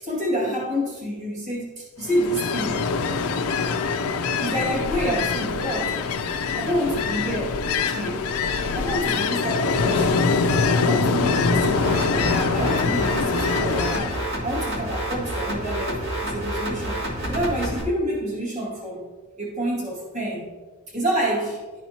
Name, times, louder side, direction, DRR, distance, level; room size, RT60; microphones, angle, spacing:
voice 1, 0.0-2.8 4.4-6.0 6.6-7.5 7.9-8.3 8.7-10.4 10.8-19.0 19.4-20.6 20.9-21.6, equal, 35° right, -6 dB, 2.0 m, -28 dB
Ocean, 2.0-14.2, left 4 dB, 85° left, 0.5 m, -24 dB
sound 1, 11.6-17.8, right 1 dB, 60° right, 2.1 m, -29 dB
12.0 x 4.2 x 2.9 m, 1.4 s
head